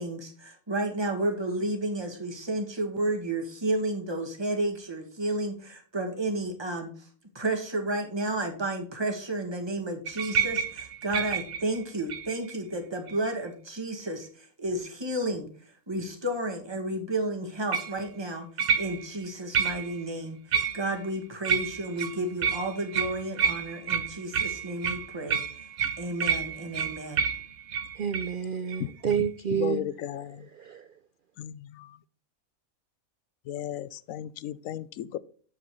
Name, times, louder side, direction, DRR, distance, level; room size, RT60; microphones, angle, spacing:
voice 1, 0.0-7.1 7.3-15.5 15.9-18.5 18.7-25.4 26.0-27.3, right 1 dB, 20° right, 1.6 m, -32 dB
sound 1, 10.1-12.5 13.1-13.5 17.7-18.0 18.6-19.2 19.5-20.0 20.5-21.1 21.4-28.3 28.7-28.8 29.1-29.3, right 7 dB, 50° right, 0.9 m, -30 dB
voice 2, 28.0-29.8 30.6-30.8, right 8 dB, 75° right, 0.4 m, -29 dB
voice 3, 29.5-30.4 31.4-31.9 33.5-35.2, left 11 dB, 80° left, 1.0 m, -35 dB
7.7 x 7.5 x 3.1 m
omnidirectional pair, 1.5 m